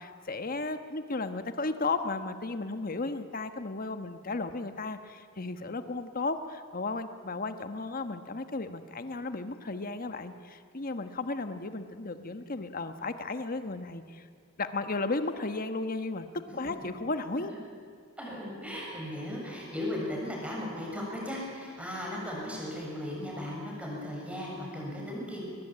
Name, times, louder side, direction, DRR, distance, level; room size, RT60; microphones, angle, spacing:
voice 1, 0.0-14.3 14.6-16.3 16.5-17.5, left 3 dB, 45° left, 9 dB, 1.2 m, -34 dB
voice 2, 18.2-25.4, left 1 dB, 5° right, -3 dB, 7.1 m, -37 dB
22.5 x 20.0 x 8.8 m, 2.2 s
head